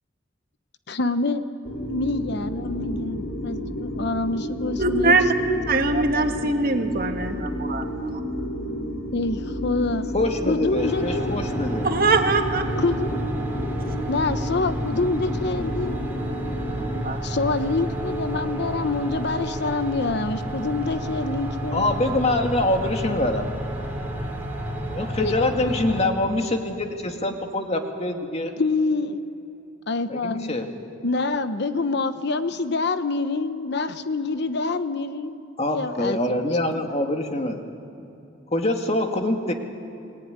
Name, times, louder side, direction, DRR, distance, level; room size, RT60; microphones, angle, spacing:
voice 1, 0.9-1.4 1.9-5.2 5.5-5.6 9.1-10.1 10.5-11.3 12.8-13.3 14.1-15.9 17.2-21.9 25.2-25.5 28.6-29.2 29.9-30.5 31.0-35.4 35.7-36.9, left 3 dB, 60° left, 10 dB, 0.9 m, -26 dB
sound 1, 1.6-17.0, equal, 85° left, 3.6 m, -31 dB
voice 2, 4.8-5.3 5.7-7.8 11.8-12.6 17.0-17.2, right 3 dB, 50° right, 5 dB, 1.9 m, -22 dB
voice 3, 10.1-11.9 21.7-23.4 24.9-28.6 30.1-30.7 35.6-37.6 38.5-39.5, left 1 dB, 35° left, 4 dB, 2.2 m, -24 dB
sound 2, 10.7-26.0, right 1 dB, 10° right, 5.1 m, -31 dB
29.5 x 19.0 x 9.6 m, 2.9 s
head